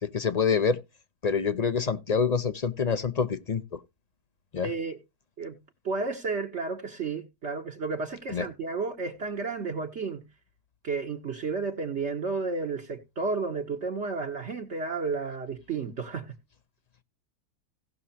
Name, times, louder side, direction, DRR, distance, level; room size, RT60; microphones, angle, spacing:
voice 1, 0.0-0.8 1.2-3.8 4.5-4.7 8.3-8.5, left 5 dB, 40° left, 0.6 m, -26 dB
voice 2, 4.6-5.0 5.4-5.6 5.8-10.2 10.8-16.3, right 4 dB, 50° right, 1.3 m, -32 dB
17.0 x 6.2 x 2.8 m
omnidirectional pair, 1.6 m